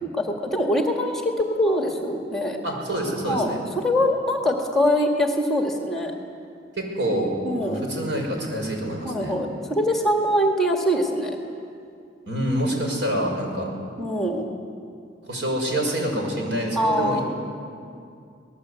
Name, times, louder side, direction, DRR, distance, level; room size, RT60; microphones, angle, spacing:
voice 1, 0.0-2.6 3.3-6.1 7.4-7.8 9.0-11.4 14.0-14.5 16.8-17.2, equal, ahead, 1 dB, 1.9 m, -23 dB
voice 2, 2.6-3.6 6.8-7.3 7.6-9.3 12.3-13.7 15.3-17.2, right 1 dB, 90° right, 0 dB, 6.0 m, -26 dB
26.0 x 19.0 x 8.4 m, 2.4 s
head